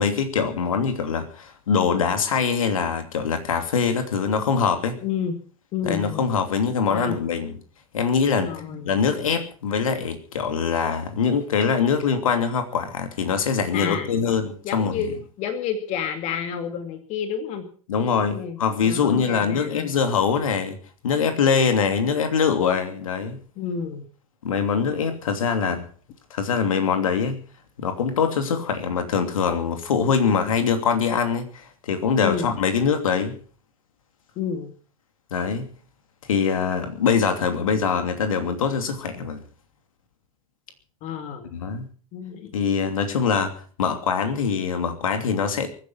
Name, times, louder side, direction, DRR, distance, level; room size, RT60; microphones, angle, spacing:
voice 1, 0.0-5.0 5.8-7.6 7.9-8.5 8.9-15.0 17.9-20.8 21.0-23.4 24.4-25.8 26.3-27.4 27.8-33.4 35.3-35.7 36.3-39.4 41.5-41.9 42.5-45.7, left 6 dB, 65° left, 7 dB, 2.9 m, -23 dB
voice 2, 5.0-5.4 5.7-6.3 6.9-7.2 8.4-9.0 13.7-14.3 14.6-17.7 18.3-19.9 23.6-24.0 32.2-32.6 34.4-34.7 41.0-41.5 42.1-42.5, left 7 dB, 40° left, 7 dB, 2.4 m, -30 dB
23.5 x 10.0 x 5.8 m, 0.42 s
figure-of-eight pair, 90°, 19 cm